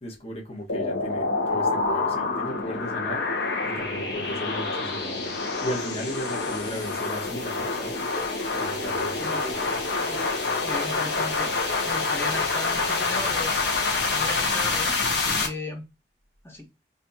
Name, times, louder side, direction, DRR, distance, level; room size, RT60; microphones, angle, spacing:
voice 1, 0.0-9.8, equal, 35° left, 1.4 m, -36 dB
sound 1, 0.7-15.5, left 3 dB, 70° left, 1.2 m, -27 dB
voice 2, 9.9-10.3 10.6-11.5 11.9-13.5 14.1-15.9 16.4-16.7, left 2 dB, 15° left, 1.1 m, -36 dB
4.2 x 3.0 x 2.7 m
head